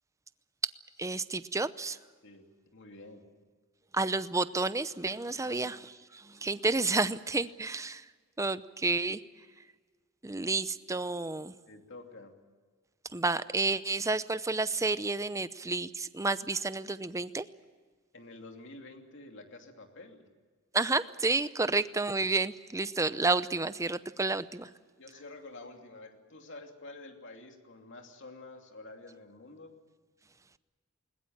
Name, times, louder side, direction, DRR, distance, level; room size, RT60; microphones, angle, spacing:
voice 1, 1.0-2.0 3.9-8.0 8.4-9.2 10.2-11.5 13.1-17.4 20.7-24.7, right 3 dB, 15° right, 14 dB, 0.7 m, -30 dB
voice 2, 2.2-3.3 5.4-5.7 11.7-12.3 18.1-20.2 21.6-21.7 25.0-29.7, left 2 dB, 65° left, 4 dB, 2.8 m, -49 dB
21.0 x 20.5 x 8.9 m, 1.5 s
head